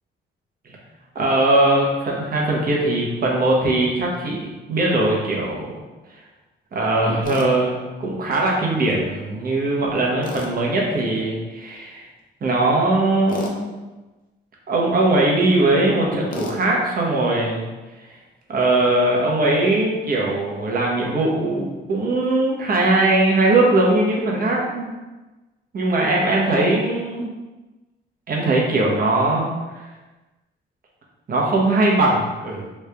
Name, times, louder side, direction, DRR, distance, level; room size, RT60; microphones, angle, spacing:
voice 1, 1.1-5.7 6.7-7.7 8.0-12.0 12.4-13.7 14.7-17.7 18.5-24.9 25.7-27.3 28.3-29.5 29.7-29.8 31.3-32.7, right 2 dB, 45° right, -2 dB, 1.0 m, -20 dB
Tools, 7.2-7.5 10.2-10.6 13.3-13.6 16.3-16.6, left 3 dB, 45° left, 0.6 m, -31 dB
3.2 x 2.6 x 3.4 m, 1.2 s
cardioid pair, 90°, 20 cm